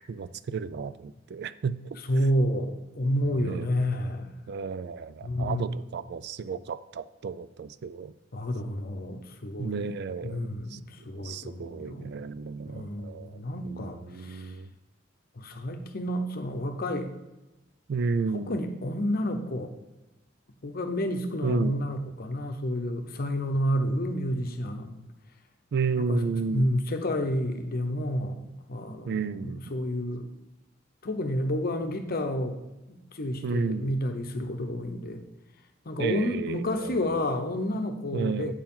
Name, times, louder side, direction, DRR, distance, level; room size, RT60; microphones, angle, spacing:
voice 1, 0.1-1.7 3.4-3.7 4.5-8.1 9.6-10.8 11.1-13.4 13.6-14.7 17.9-18.5 21.4-21.8 25.7-26.7 29.1-29.6 33.4-34.0 36.0-37.0 38.1-38.5, right 5 dB, 60° right, 15 dB, 0.4 m, -32 dB
voice 2, 2.1-4.4 5.2-5.7 8.3-9.9 10.2-12.2 12.7-14.5 15.4-17.1 18.3-19.7 20.6-24.9 26.0-26.2 26.5-30.3 31.0-32.6 32.9-35.2 35.8-38.5, equal, 50° left, 6 dB, 0.8 m, -30 dB
8.9 x 4.7 x 5.5 m, 0.98 s
head